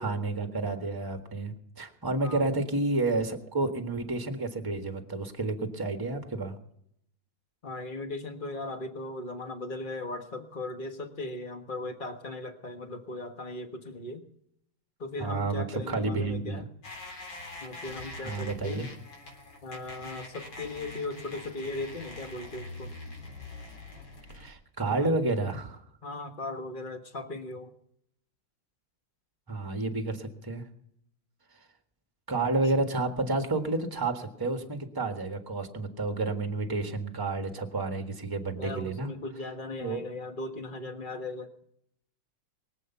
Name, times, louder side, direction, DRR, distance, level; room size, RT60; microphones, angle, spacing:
voice 1, 0.0-6.5 15.2-16.6 18.2-18.9 24.3-25.8 29.5-30.6 32.3-39.1 39.8-40.0, right 2 dB, 10° right, 6 dB, 1.5 m, -30 dB
voice 2, 7.6-14.2 15.0-16.6 17.6-18.9 19.6-22.9 24.8-25.1 26.0-27.7 32.6-32.7 38.5-41.5, left 2 dB, 25° left, 6 dB, 1.5 m, -38 dB
sound 1, 16.8-24.5, left 2 dB, 80° left, 4.5 m, -44 dB
23.5 x 8.1 x 5.8 m, 0.72 s
omnidirectional pair, 2.2 m